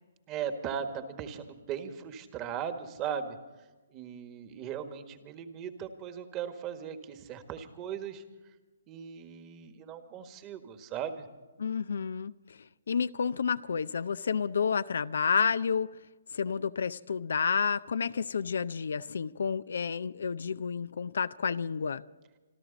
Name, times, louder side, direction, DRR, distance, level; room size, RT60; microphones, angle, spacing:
voice 1, 0.3-3.4 3.9-8.2 8.9-11.3, right 8 dB, 25° right, 1.6 m, -38 dB
voice 2, 11.6-12.6 12.9-15.9 16.3-22.0, left 6 dB, 70° left, 0.5 m, -30 dB
27.0 x 13.0 x 4.0 m
hypercardioid pair, 140°, 0 cm